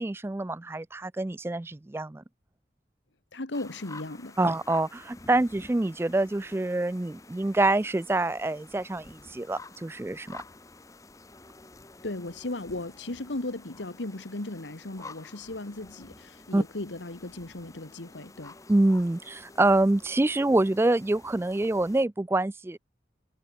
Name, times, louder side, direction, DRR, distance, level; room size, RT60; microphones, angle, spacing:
voice 1, 0.0-2.2 4.4-10.4 16.5-16.6 18.7-22.8, right 2 dB, 15° right, 0.3 m, -26 dB
voice 2, 3.3-4.6 12.0-18.6, left 2 dB, 85° left, 1.7 m, -36 dB
sound 1, 3.5-22.0, left 3 dB, 20° left, 0.7 m, -50 dB
head